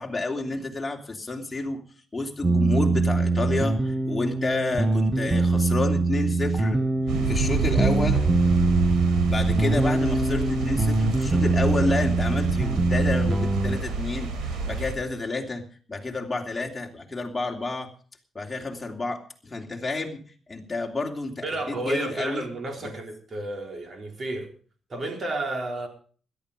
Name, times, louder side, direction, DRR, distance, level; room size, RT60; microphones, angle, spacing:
voice 1, 0.0-1.8 2.1-6.8 7.2-8.2 9.3-15.6 15.9-17.9 18.3-20.2 20.5-22.5 22.8-22.9, left 3 dB, 15° left, 3.0 m, -30 dB
sound 1, 2.4-13.8, right 3 dB, 20° right, 1.4 m, -23 dB
sound 2, 7.1-14.9, right 4 dB, 90° right, 4.4 m, -29 dB
voice 2, 21.4-24.5 24.9-25.9, right 2 dB, 35° right, 4.0 m, -31 dB
17.0 x 12.0 x 5.1 m
cardioid pair, 130°, 0 cm